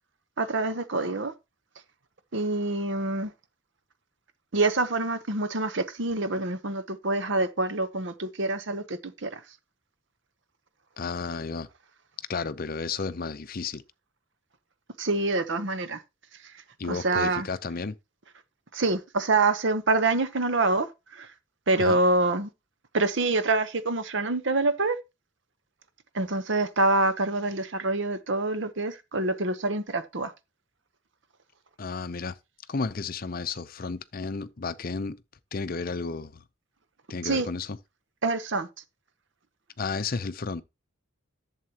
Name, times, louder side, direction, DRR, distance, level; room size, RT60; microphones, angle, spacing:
voice 1, 0.4-1.3 2.3-3.3 4.5-9.4 15.0-16.0 16.8-17.5 18.7-21.3 21.7-22.5 22.9-25.0 26.1-30.3 37.2-37.5 38.2-38.7, right 2 dB, 60° right, 0.9 m, -26 dB
voice 2, 11.0-11.7 12.3-13.8 16.8-18.0 21.8-22.0 31.8-32.4 32.7-35.2 35.5-36.4 37.1-37.8 39.8-40.6, left 4 dB, 45° left, 0.6 m, -32 dB
11.0 x 7.5 x 2.9 m
head